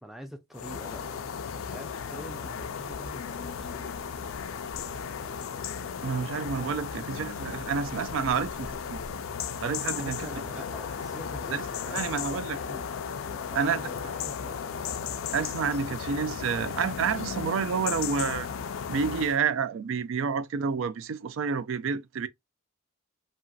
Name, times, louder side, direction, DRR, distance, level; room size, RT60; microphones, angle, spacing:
voice 1, 0.0-1.2 1.5-3.9 9.9-12.9 13.5-14.6, equal, ahead, 0.4 m, -45 dB
sound 1, 0.5-19.4, left 7 dB, 75° left, 0.4 m, -35 dB
sound 2, 2.7-9.1, right 1 dB, 55° right, 1.0 m, -52 dB
voice 2, 6.0-9.0 9.6-10.4 11.5-11.6 11.9-12.6 13.6-13.9 15.3-18.5 18.9-22.3, right 6 dB, 70° right, 0.3 m, -29 dB
2.9 x 2.7 x 2.3 m
head